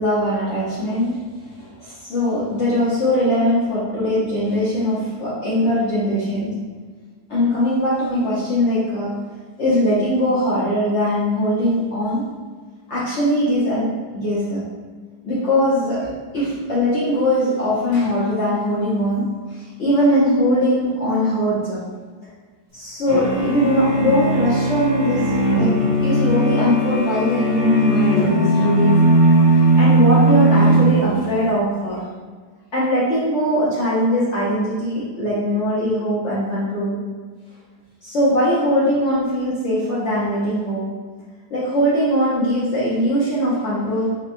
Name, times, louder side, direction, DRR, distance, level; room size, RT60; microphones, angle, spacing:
voice 1, 0.0-6.6 7.3-9.3 9.6-12.3 12.9-14.6 15.2-21.8 22.7-25.8 26.0-29.1 29.5-32.0 32.7-37.0 38.0-40.9 41.5-44.2, equal, 60° left, -9 dB, 0.7 m, -21 dB
sound 1, 23.1-31.4, right 1 dB, 50° right, 0.5 m, -18 dB
4.4 x 2.1 x 2.5 m, 1.5 s
omnidirectional pair, 2.1 m